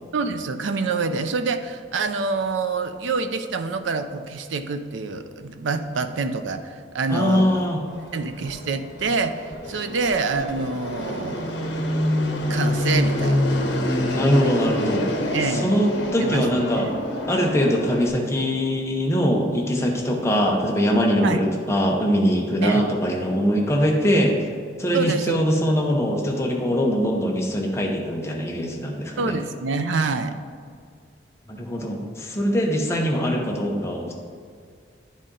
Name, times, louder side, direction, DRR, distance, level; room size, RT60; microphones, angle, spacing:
voice 1, 0.1-7.7 8.1-11.7 12.5-13.5 15.3-15.7 16.2-16.9 21.2-21.4 22.6-22.9 24.9-25.4 29.2-30.4, right 4 dB, 85° right, 9 dB, 0.5 m, -26 dB
voice 2, 7.1-7.8 13.9-15.0 15.4-16.9 17.3-24.5 24.8-29.4 31.5-34.1, equal, 15° left, 0 dB, 0.8 m, -22 dB
Fixed-wing aircraft airplane, 7.9-18.1, left 1 dB, 75° left, 0.9 m, -26 dB
10.0 x 4.1 x 3.7 m, 2.1 s
head